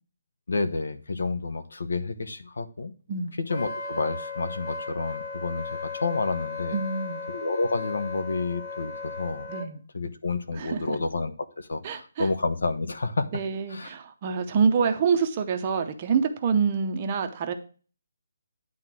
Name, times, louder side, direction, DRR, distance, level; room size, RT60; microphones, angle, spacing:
voice 1, 0.5-2.9 3.4-6.8 7.3-9.5 9.9-13.3 13.7-13.9, left 3 dB, 75° left, 10 dB, 1.1 m, -30 dB
Wind instrument woodwind instrument, 3.5-9.7, left 4 dB, 30° left, 1.0 m, -36 dB
voice 2, 6.7-7.2 9.5-9.8 10.6-11.0 11.8-12.3 13.3-17.5, right 6 dB, 20° right, 6 dB, 0.7 m, -26 dB
10.0 x 3.8 x 6.1 m, 0.37 s
hypercardioid pair, 180°, 0 cm